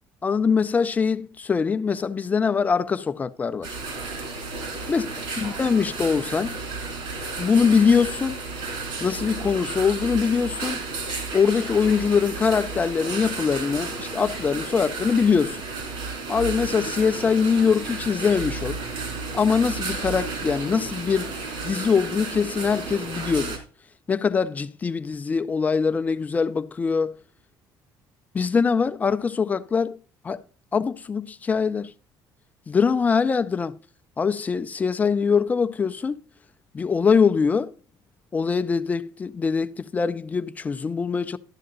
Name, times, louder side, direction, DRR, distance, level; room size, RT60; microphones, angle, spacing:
voice 1, 0.2-3.8 4.9-5.1 5.4-6.6 7.4-8.4 9.0-10.8 11.3-15.6 16.3-18.8 19.3-21.4 21.6-23.6 24.1-27.2 28.3-30.0 30.2-30.4 30.7-31.9 32.7-33.8 34.2-36.2 36.7-37.7 38.3-41.4, left 5 dB, 20° left, 0.4 m, -23 dB
sound 1, 3.6-23.6, right 3 dB, 75° right, 3.0 m, -32 dB
12.5 x 7.7 x 3.8 m
cardioid pair, 170°, 8 cm